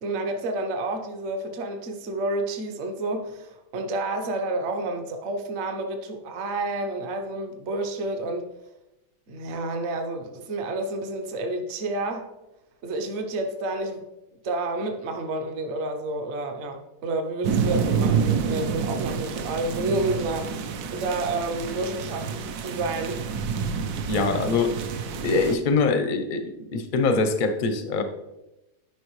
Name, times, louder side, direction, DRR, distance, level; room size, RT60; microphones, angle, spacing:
voice 1, 0.0-8.5 9.3-12.3 12.8-14.0 14.4-20.6 20.9-23.2, right 2 dB, 50° right, 4 dB, 0.9 m, -30 dB
sound 1, 17.4-25.6, right 6 dB, 70° right, 1.1 m, -28 dB
voice 2, 24.1-24.7 25.2-26.4 26.7-28.0, left 4 dB, 60° left, 7 dB, 0.5 m, -23 dB
10.5 x 5.3 x 3.1 m, 0.95 s
omnidirectional pair, 1.8 m